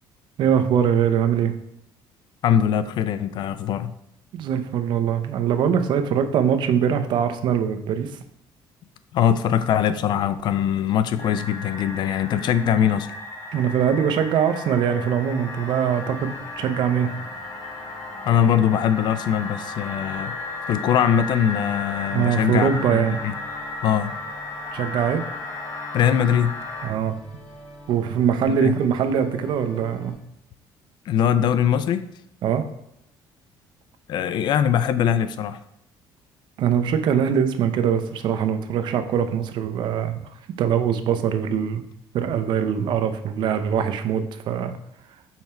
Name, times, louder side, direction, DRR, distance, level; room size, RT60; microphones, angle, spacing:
voice 1, 0.4-1.6 4.3-8.1 13.5-17.1 22.1-23.2 24.7-25.2 26.8-27.2 27.9-30.1 32.4-32.6 36.6-40.2 40.6-41.8 42.1-44.7, right 8 dB, 60° right, 8 dB, 0.6 m, -22 dB
voice 2, 2.4-3.9 9.1-13.1 18.3-20.3 20.7-23.3 23.8-24.1 25.9-26.5 28.5-28.7 31.1-32.1 34.1-35.6, left 9 dB, 55° left, 13 dB, 0.4 m, -21 dB
sound 1, 11.2-26.9, left 3 dB, 30° left, 1.8 m, -35 dB
sound 2, 15.9-30.1, equal, 5° left, 1.7 m, -46 dB
5.7 x 4.4 x 4.3 m, 0.79 s
cardioid pair, 145°, 9 cm